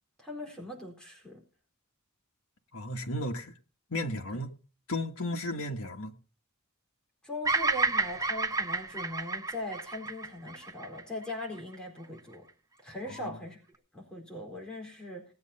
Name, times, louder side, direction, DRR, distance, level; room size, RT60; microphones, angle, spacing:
voice 1, 0.2-1.4 4.3-4.4 7.2-12.5 12.8-13.6 13.9-15.3, left 1 dB, 5° left, 4.2 m, -40 dB
voice 2, 2.7-3.5 3.9-4.6 4.9-6.1 13.1-13.4, left 1 dB, 85° left, 1.6 m, -34 dB
Bird vocalization bird call bird song, 7.4-11.7, right 3 dB, 15° right, 0.8 m, -31 dB
19.0 x 9.0 x 4.2 m
head